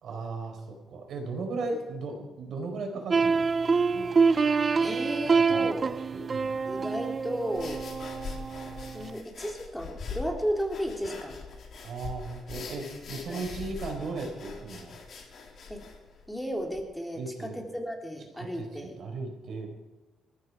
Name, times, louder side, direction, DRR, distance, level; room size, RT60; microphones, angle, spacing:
voice 1, 0.0-4.1 5.3-5.7 6.1-6.5 11.8-15.0 17.1-17.6 18.6-19.7, right 3 dB, 65° right, 3 dB, 4.6 m, -36 dB
sound 1, 3.1-9.2, right 5 dB, 35° right, 0.5 m, -26 dB
voice 2, 4.8-5.9 6.6-7.9 8.9-11.5 13.3-13.5 15.7-15.8 16.3-19.0, equal, 5° left, 1 dB, 3.4 m, -34 dB
sound 2, 7.5-16.8, left 4 dB, 60° left, 3.4 m, -42 dB
19.5 x 14.5 x 4.8 m, 1.1 s
cardioid pair, 90°, 0 cm